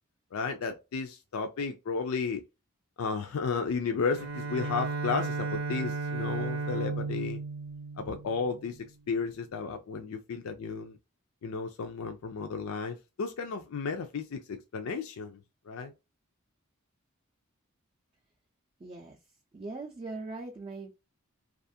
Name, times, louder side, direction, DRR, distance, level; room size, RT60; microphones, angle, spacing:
voice 1, 0.3-2.4 3.0-7.4 8.0-11.0 11.4-14.4 14.7-15.4 15.7-15.9, left 5 dB, 75° left, 0.4 m, -33 dB
Bowed string instrument, 4.1-8.8, right 3 dB, 65° right, 0.6 m, -34 dB
voice 2, 18.8-19.2 19.5-20.9, right 3 dB, 25° right, 0.4 m, -40 dB
2.4 x 2.4 x 2.6 m
head